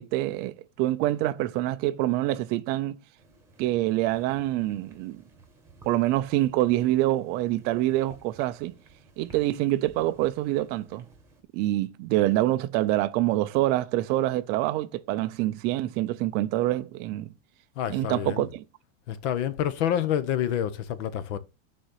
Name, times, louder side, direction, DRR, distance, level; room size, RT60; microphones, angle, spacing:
voice 1, 0.0-3.0 3.6-5.2 5.8-8.7 9.2-11.1 11.5-17.3 17.9-18.6, right 15 dB, 25° right, 0.3 m, -26 dB
sound 1, 3.2-11.4, right 3 dB, 5° right, 1.6 m, -55 dB
voice 2, 17.8-18.5 19.1-21.4, left 10 dB, 60° left, 1.0 m, -28 dB
6.4 x 4.2 x 6.4 m
supercardioid pair, 150°, 40 cm